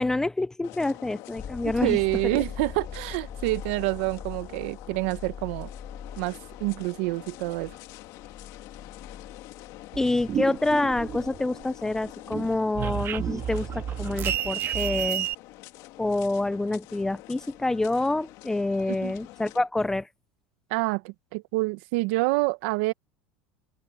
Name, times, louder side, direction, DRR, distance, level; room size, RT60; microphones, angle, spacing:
voice 1, 0.0-2.0 2.3-2.4 10.0-15.3 16.0-20.1, left 2 dB, 10° left, 0.4 m, -27 dB
sound 1, 0.6-19.6, left 19 dB, 60° left, 2.2 m, -46 dB
sound 2, 1.4-14.9 17.6-17.7, left 7 dB, 25° left, 1.7 m, -43 dB
voice 2, 1.8-5.7 6.2-7.7 18.9-19.1 20.7-22.9, right 23 dB, 70° right, 0.9 m, -27 dB
sound 3, 9.9-11.6 12.0-15.3, right 10 dB, 35° right, 1.7 m, -30 dB
supercardioid pair, 130°, 7 cm